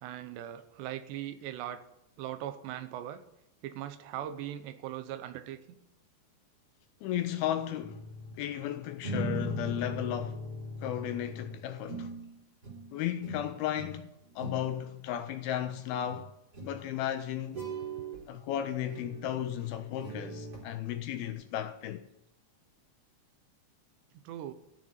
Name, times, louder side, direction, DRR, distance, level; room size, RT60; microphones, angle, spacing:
voice 1, 0.0-1.8 2.2-3.2 3.6-5.6 24.1-24.5, right 11 dB, 85° right, 3.1 m, -39 dB
voice 2, 7.0-8.0 8.4-10.4 10.8-12.1 12.9-16.3 16.6-17.6 18.3-22.1, left 11 dB, 80° left, 2.3 m, -34 dB
sound 1, 7.8-8.4 9.0-12.3 12.6-12.9 13.2-14.0 14.2-14.7 15.6-15.7 16.1-16.2 16.5-16.8 17.5-18.2 18.9-20.6 21.2-21.3, right 1 dB, 25° right, 3.8 m, -39 dB
14.0 x 6.7 x 8.7 m
omnidirectional pair, 4.8 m